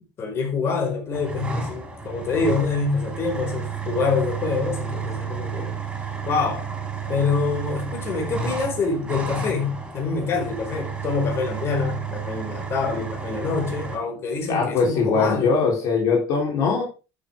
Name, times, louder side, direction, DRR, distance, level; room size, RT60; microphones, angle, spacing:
voice 1, 0.2-5.7 6.2-6.7 7.1-15.7, left 4 dB, 35° left, 5.0 m, -26 dB
sound 1, 1.1-14.0, right 5 dB, 10° right, 3.7 m, -31 dB
voice 2, 14.5-16.8, left 4 dB, 50° left, 3.9 m, -21 dB
13.0 x 7.8 x 3.7 m
cardioid pair, 160°, 8 cm